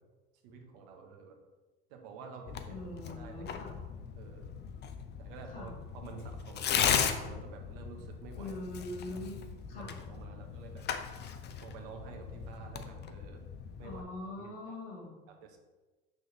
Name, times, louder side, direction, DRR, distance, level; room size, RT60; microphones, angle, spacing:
voice 1, 0.4-1.4 1.9-2.8 3.2-3.8 4.1-4.5 5.2-8.6 9.1-9.2 9.7-10.8 11.6-13.4 13.8-14.0 14.4-14.8 15.3-15.6, right 5 dB, 70° right, 3 dB, 1.2 m, -49 dB
Tearing, 2.5-14.0, left 8 dB, 35° left, 0.6 m, -37 dB
voice 2, 2.7-3.8 5.5-5.7 8.4-9.4 9.7-9.9 13.8-15.2, left 1 dB, 85° left, -3 dB, 2.0 m, -42 dB
6.3 x 4.8 x 3.3 m, 1.2 s
hypercardioid pair, 90°, 29 cm